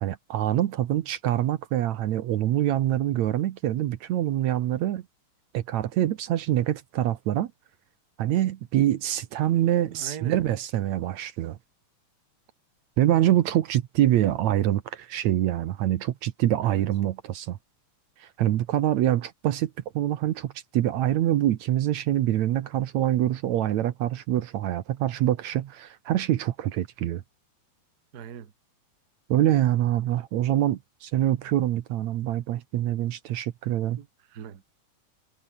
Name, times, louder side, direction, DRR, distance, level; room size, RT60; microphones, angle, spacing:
voice 1, 0.0-5.0 5.5-7.5 8.2-11.6 13.0-17.6 18.2-19.7 20.0-27.2 29.3-34.0, right 13 dB, 70° right, 2.2 m, -25 dB
voice 2, 9.9-10.4 16.6-16.9 28.1-28.5 34.0-34.6, right 8 dB, 45° right, 1.4 m, -41 dB
omnidirectional pair, 3.6 m